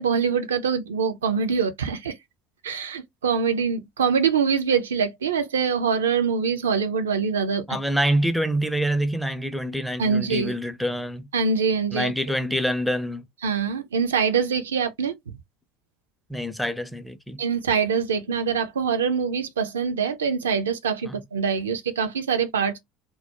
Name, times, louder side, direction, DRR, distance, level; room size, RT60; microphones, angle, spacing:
voice 1, 0.0-2.2 2.6-7.8 10.0-10.5 11.3-12.1 13.4-15.2 17.4-22.8, right 6 dB, 75° right, 0.3 m, -24 dB
voice 2, 7.7-11.3 11.9-13.2 16.3-17.4 21.1-21.2, equal, ahead, 0.4 m, -26 dB
2.2 x 2.0 x 2.7 m
figure-of-eight pair, 65°, 0 cm